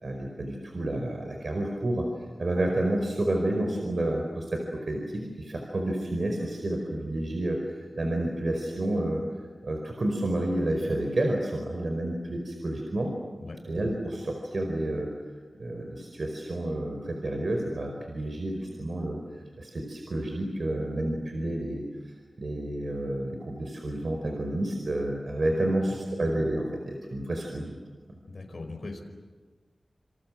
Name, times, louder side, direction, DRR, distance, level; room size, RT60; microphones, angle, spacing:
voice 1, 0.0-9.2 9.6-13.1 13.6-15.1 15.6-19.2 19.6-27.8, right 1 dB, 60° right, 2 dB, 4.8 m, -30 dB
voice 2, 25.5-26.0 28.3-29.0, left 3 dB, 55° left, 2 dB, 5.2 m, -40 dB
28.5 x 27.5 x 7.7 m, 1.4 s
wide cardioid pair, 90°, 0 cm